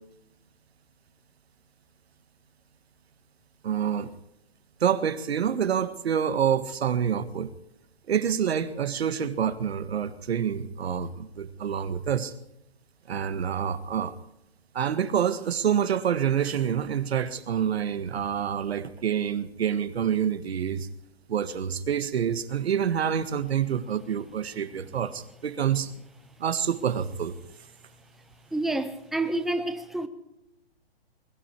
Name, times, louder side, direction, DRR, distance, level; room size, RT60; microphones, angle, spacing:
voice 1, 3.6-4.1 4.8-7.5 8.1-12.3 13.1-14.2 14.7-20.9 21.3-25.9 26.4-27.4, right 8 dB, 75° right, 1.6 m, -27 dB
voice 2, 28.5-30.1, right 2 dB, ahead, 0.7 m, -28 dB
21.5 x 13.0 x 4.6 m
hypercardioid pair, 150°, 32 cm